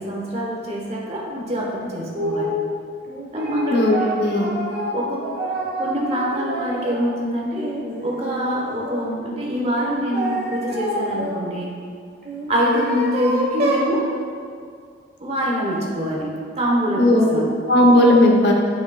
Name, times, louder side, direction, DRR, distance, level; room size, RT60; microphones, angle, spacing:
voice 1, 0.0-2.6 3.3-4.6 4.9-11.7 12.5-14.1 15.2-17.5, equal, 35° right, -3 dB, 1.1 m, -25 dB
sound 1, 2.1-2.6 3.1-7.1 7.5-9.1 9.8-11.4 12.2-13.9, right 1 dB, 55° right, 1.3 m, -27 dB
voice 2, 3.7-4.5 17.0-17.3 17.7-18.5, left 1 dB, 60° left, 0 dB, 0.9 m, -15 dB
8.8 x 5.7 x 2.4 m, 2.3 s
head